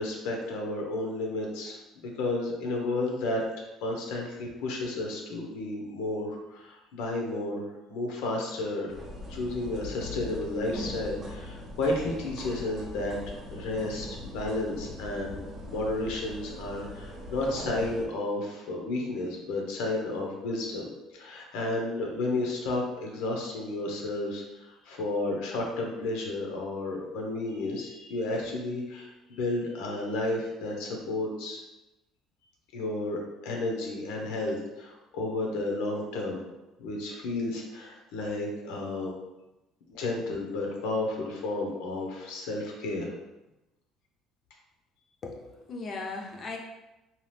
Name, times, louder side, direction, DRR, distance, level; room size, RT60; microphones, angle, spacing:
voice 1, 0.0-3.4 3.8-7.6 7.9-9.0 9.3-15.4 15.7-31.6 32.7-36.4 36.8-39.1 39.9-43.1, left 2 dB, 85° left, 0 dB, 0.7 m, -32 dB
sound 1, 8.9-18.1, left 1 dB, 25° right, 0.5 m, -41 dB
voice 2, 45.2-46.6, left 3 dB, 35° left, 1 dB, 0.5 m, -37 dB
2.8 x 2.3 x 3.3 m, 1.0 s
cardioid pair, 140°, 0 cm